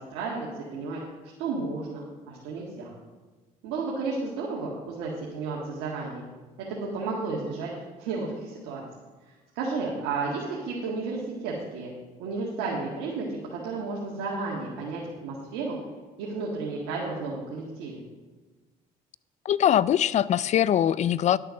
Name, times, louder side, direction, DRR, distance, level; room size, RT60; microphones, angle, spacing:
voice 1, 0.1-1.0 1.4-3.0 3.6-6.2 6.7-7.7 8.0-8.8 9.6-11.9 12.2-15.8 16.2-18.0, right 4 dB, 85° right, -4 dB, 1.9 m, -32 dB
voice 2, 19.4-21.4, left 10 dB, 45° left, 19 dB, 0.4 m, -22 dB
10.5 x 6.7 x 6.4 m, 1.3 s
supercardioid pair, 80°, 16 cm